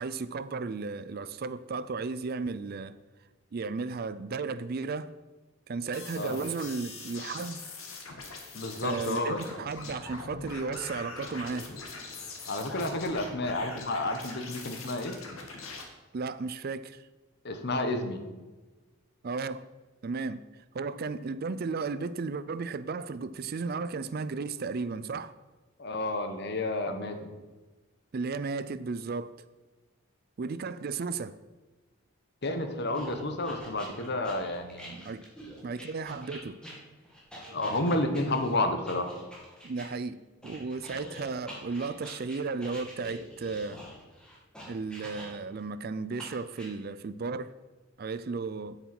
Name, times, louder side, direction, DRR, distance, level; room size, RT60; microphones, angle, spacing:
voice 1, 0.0-3.0 3.5-5.1 5.7-7.6 8.8-11.7 16.1-17.1 19.2-19.7 20.0-25.4 28.1-29.3 30.4-31.4 34.9-35.2 35.6-36.6 39.6-43.8 44.7-47.5 48.0-48.8, right 4 dB, 45° right, 0.4 m, -34 dB
sound 1, 5.9-15.8, left 3 dB, 90° left, 2.0 m, -43 dB
voice 2, 8.5-9.4 12.5-15.1 17.4-18.2 25.8-27.2 32.4-35.0 37.5-39.1, left 2 dB, 50° left, 1.2 m, -30 dB
sound 2, 32.9-39.9 40.4-45.6 46.2-46.7, equal, 5° left, 2.5 m, -46 dB
9.4 x 7.9 x 6.0 m
head